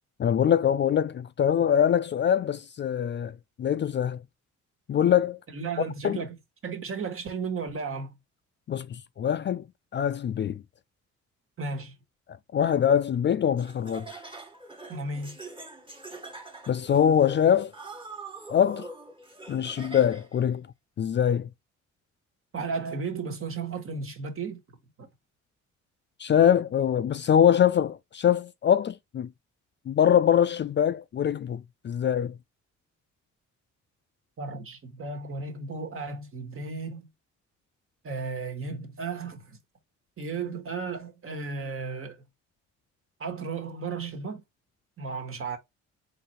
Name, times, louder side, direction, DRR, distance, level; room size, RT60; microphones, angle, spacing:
voice 1, 0.2-4.2 4.9-5.4 6.0-6.2 8.7-9.6 9.9-10.6 12.5-14.1 16.7-17.7 18.5-18.9 19.5-20.7 21.0-21.5 26.2-29.3 29.9-32.4, left 9 dB, 40° left, 0.4 m, -23 dB
voice 2, 5.5-6.4 6.6-8.2 11.6-11.9 14.9-15.4 22.5-24.6 25.0-25.1 34.4-37.1 38.0-39.6 40.2-42.2 43.2-44.4 45.0-45.6, right 4 dB, 45° right, 1.5 m, -34 dB
Laughter, 13.6-20.4, right 2 dB, 15° right, 1.4 m, -43 dB
3.8 x 3.3 x 4.2 m
cardioid pair, 90°, 30 cm